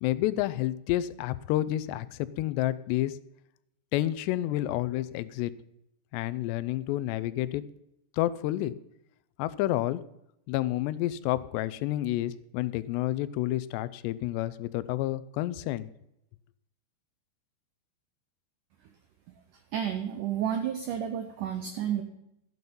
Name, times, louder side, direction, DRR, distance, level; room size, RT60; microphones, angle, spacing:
voice 1, 0.0-3.1 3.9-5.5 6.1-7.6 8.2-8.7 9.4-10.0 10.5-15.9, left 15 dB, 85° left, 16 dB, 2.8 m, -29 dB
voice 2, 19.7-22.0, right 9 dB, 85° right, 7 dB, 1.8 m, -31 dB
14.0 x 9.4 x 5.4 m, 0.83 s
omnidirectional pair, 4.8 m